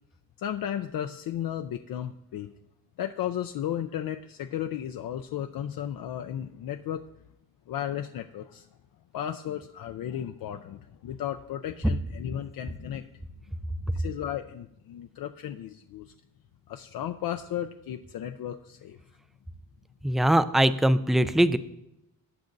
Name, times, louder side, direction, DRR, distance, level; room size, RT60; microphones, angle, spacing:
voice 1, 0.4-2.5 3.0-7.0 7.7-8.7 9.1-13.1 13.8-16.1 16.7-19.0, left 10 dB, 70° left, 6 dB, 0.5 m, -34 dB
voice 2, 20.0-21.6, right 1 dB, ahead, 13 dB, 0.3 m, -21 dB
18.5 x 8.4 x 2.6 m, 0.83 s
cardioid pair, 115°, 36 cm